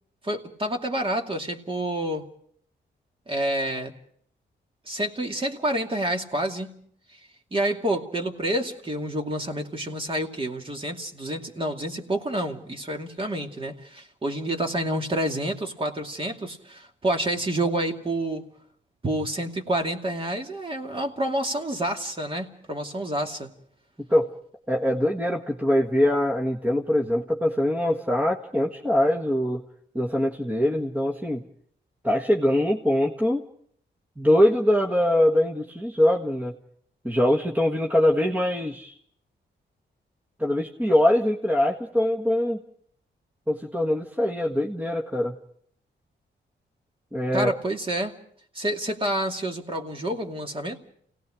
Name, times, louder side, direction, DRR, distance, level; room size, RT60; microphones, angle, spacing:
voice 1, 0.2-2.3 3.3-3.9 4.9-6.8 7.5-18.4 19.0-23.5 47.3-48.2 48.5-50.8, right 1 dB, 30° right, 2 dB, 2.5 m, -28 dB
voice 2, 24.0-24.3 24.7-29.6 29.9-31.4 32.0-33.4 34.2-36.5 37.0-38.9 40.4-42.6 43.5-45.3 47.1-47.5, left 1 dB, 10° right, 0 dB, 1.6 m, -23 dB
29.0 x 18.0 x 5.0 m, 0.63 s
cardioid pair, 105°, 19 cm